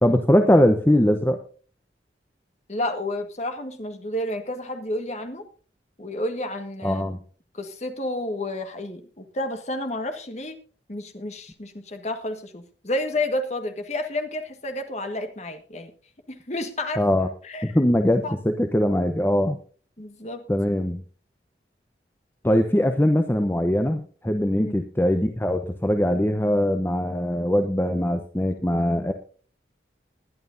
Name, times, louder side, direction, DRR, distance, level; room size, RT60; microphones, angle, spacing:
voice 1, 0.0-1.4 6.8-7.2 17.0-17.3 17.6-19.6 20.5-21.0 22.4-29.1, left 1 dB, 10° left, 6 dB, 0.8 m, -21 dB
voice 2, 2.7-5.4 6.0-7.0 7.5-10.6 10.9-15.9 16.3-17.0 17.4-17.8 18.1-18.4 20.0-20.4 24.6-24.7, left 1 dB, 40° left, 6 dB, 1.5 m, -30 dB
20.5 x 11.0 x 2.6 m, 0.40 s
head